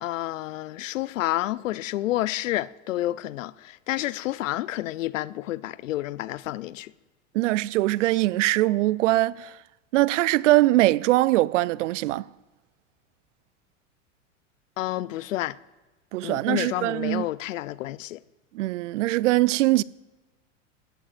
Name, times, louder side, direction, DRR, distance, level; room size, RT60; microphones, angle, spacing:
voice 1, 0.0-6.9 14.8-15.6 16.2-18.2, left 15 dB, 80° left, 0.5 m, -29 dB
voice 2, 7.3-9.5 9.9-12.2 16.1-17.3 18.5-19.8, right 18 dB, 75° right, 0.5 m, -22 dB
19.0 x 13.5 x 2.5 m
hypercardioid pair, 100°, 38 cm